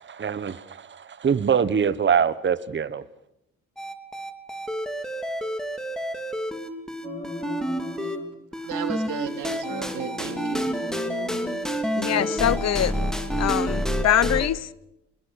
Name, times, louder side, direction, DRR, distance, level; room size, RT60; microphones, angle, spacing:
voice 1, 0.2-0.6 1.2-3.0, right 7 dB, 40° right, 1.3 m, -22 dB
sound 1, 3.8-8.2 8.5-14.5, equal, ahead, 2.8 m, -29 dB
sound 2, 7.0-8.3 9.6-11.6 12.1-13.3, left 2 dB, 20° left, 3.9 m, -36 dB
voice 2, 8.5-10.7, right 10 dB, 90° right, 2.9 m, -34 dB
voice 3, 12.0-13.0 13.4-14.7, left 11 dB, 60° left, 0.9 m, -23 dB
26.5 x 20.5 x 6.6 m
cardioid pair, 90°, 30 cm